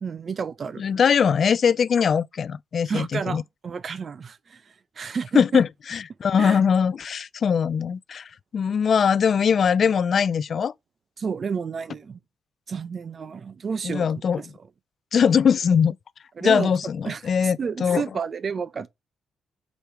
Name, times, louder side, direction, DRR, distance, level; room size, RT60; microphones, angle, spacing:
voice 1, 0.0-0.8 2.8-4.6 5.0-5.6 6.4-6.6 11.2-12.2 12.7-14.5 16.4-16.7 17.0-18.9, right 6 dB, 45° right, 0.7 m, -31 dB
voice 2, 0.8-3.4 5.3-8.3 8.5-10.7 13.8-14.4 15.1-16.0 16.4-18.0, left 7 dB, 50° left, 0.4 m, -21 dB
5.1 x 4.4 x 4.6 m
cardioid pair, 90°, 0 cm